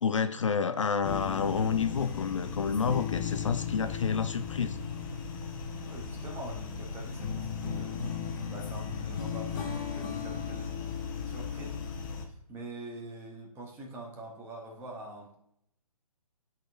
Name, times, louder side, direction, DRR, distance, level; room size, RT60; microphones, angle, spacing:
voice 1, 0.0-4.8, left 6 dB, 55° left, 10 dB, 0.4 m, -29 dB
sound 1, 1.0-12.3, left 6 dB, 35° left, 0.9 m, -36 dB
voice 2, 5.9-8.0 8.5-10.7 11.3-11.8 12.3-15.3, right 1 dB, 10° right, 0 dB, 1.0 m, -44 dB
10.0 x 4.1 x 2.5 m, 0.73 s
figure-of-eight pair, 135°, 19 cm